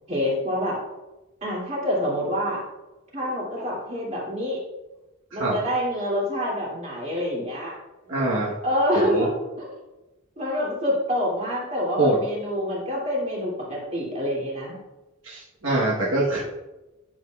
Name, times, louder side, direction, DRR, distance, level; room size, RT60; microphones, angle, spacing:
voice 1, 0.1-0.8 1.4-2.6 3.1-4.6 5.3-7.7 8.6-9.3 9.6-9.7 10.4-14.8, equal, 30° right, -4 dB, 2.7 m, -26 dB
voice 2, 8.1-8.5 8.9-9.3 12.0-12.2 15.2-16.4, right 1 dB, 65° right, -4 dB, 1.3 m, -23 dB
11.5 x 7.3 x 2.4 m, 1.0 s
head